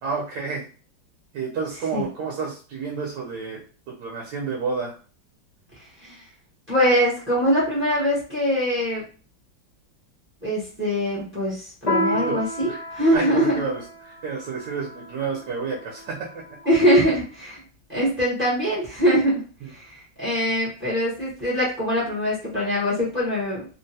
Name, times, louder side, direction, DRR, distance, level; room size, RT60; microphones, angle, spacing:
voice 1, 0.0-0.6 1.3-3.6 3.9-5.0 12.1-12.4 12.7-12.8 13.1-13.8 14.1-16.4 19.6-19.7, right 5 dB, 70° right, -2 dB, 1.2 m, -30 dB
voice 2, 5.8-6.2 6.7-9.0 10.4-13.5 16.7-17.6 17.9-19.4 19.7-23.7, equal, 15° right, -8 dB, 0.4 m, -23 dB
Piano, 11.9-16.8, left 1 dB, 85° left, 0.3 m, -31 dB
3.6 x 2.1 x 2.7 m, 0.38 s
omnidirectional pair, 2.2 m